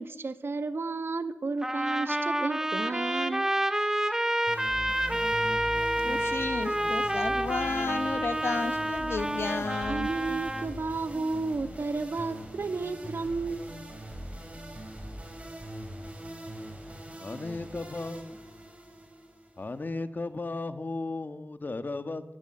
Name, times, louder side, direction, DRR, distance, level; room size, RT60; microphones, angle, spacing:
voice 1, 0.0-3.5 9.9-13.7, right 3 dB, 70° right, 10 dB, 1.7 m, -32 dB
Trumpet, 1.6-10.7, right 1 dB, 15° right, 1.9 m, -29 dB
sound 1, 4.5-19.9, right 1 dB, 30° right, 7.7 m, -41 dB
voice 2, 6.0-10.1, left 4 dB, 90° left, 11 dB, 1.4 m, -32 dB
voice 3, 17.2-18.4 19.6-22.2, left 3 dB, 50° left, 10 dB, 1.7 m, -35 dB
21.5 x 14.5 x 9.2 m, 0.90 s
wide cardioid pair, 65°, 4 cm